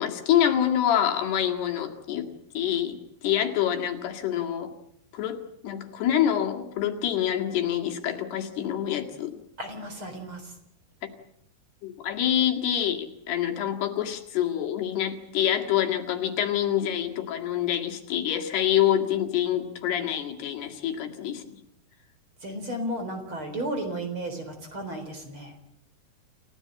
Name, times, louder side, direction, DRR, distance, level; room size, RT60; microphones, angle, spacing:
voice 1, 0.0-2.3 2.6-4.7 5.1-9.3 11.8-21.5, left 10 dB, 80° left, 3 dB, 4.1 m, -26 dB
voice 2, 9.6-10.5 22.4-25.5, right 1 dB, 30° right, 6 dB, 4.4 m, -34 dB
29.0 x 16.5 x 8.8 m, 0.75 s
omnidirectional pair, 4.7 m